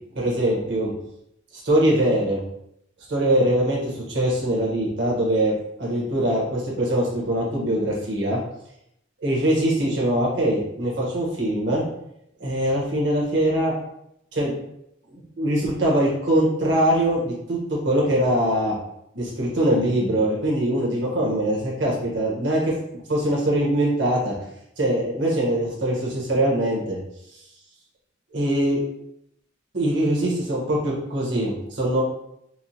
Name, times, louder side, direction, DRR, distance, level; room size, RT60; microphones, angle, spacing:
voice 1, 0.1-0.9 1.6-2.4 3.1-5.5 5.8-8.4 9.2-11.8 12.4-13.7 14.3-14.5 15.1-18.7 19.1-22.7 23.1-24.3 24.8-27.0 28.3-28.8 29.7-32.0, right 1 dB, 65° right, -4 dB, 1.1 m, -22 dB
4.5 x 2.1 x 2.8 m, 0.77 s
head